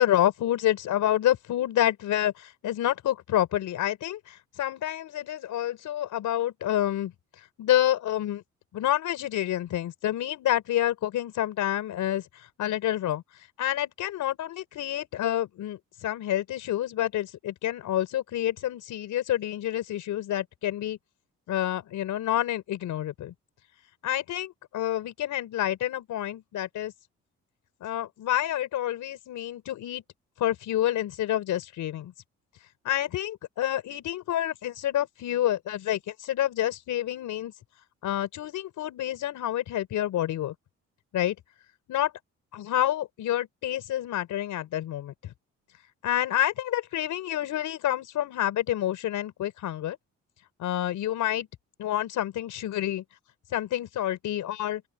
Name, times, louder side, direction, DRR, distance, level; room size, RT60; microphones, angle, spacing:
voice 1, 0.0-7.1 7.6-8.4 8.7-12.2 12.6-13.2 13.6-21.0 21.5-23.3 24.0-26.9 27.8-30.0 30.4-32.1 32.8-37.5 38.0-40.5 41.1-41.3 41.9-42.1 42.5-45.3 46.0-50.0 50.6-51.5 51.8-53.0 53.5-54.8, left 12 dB, 80° left, 4.7 m, -28 dB
open air
cardioid pair, 90°, 30 cm